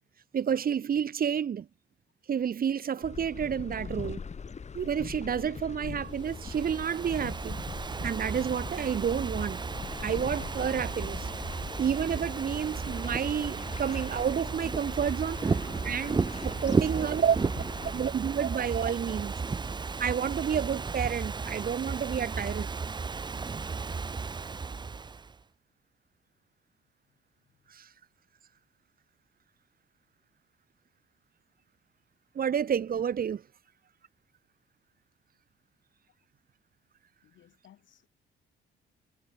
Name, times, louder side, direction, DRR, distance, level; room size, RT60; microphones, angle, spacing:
voice 1, 0.3-1.7 2.3-4.2 4.7-7.6 8.0-9.6 10.0-11.3 11.8-15.6 15.8-17.4 17.9-19.3 20.0-22.7 27.7-27.9 32.3-33.4, right 8 dB, 45° right, 1.1 m, -30 dB
sound 1, 3.0-18.1, left 5 dB, 35° left, 2.1 m, -42 dB
Ocean / Fireworks, 6.1-25.3, right 4 dB, 20° right, 0.6 m, -34 dB
voice 2, 27.1-27.8 28.6-28.7 37.2-38.1, left 11 dB, 70° left, 5.6 m, -63 dB
cardioid pair, 90°, 20 cm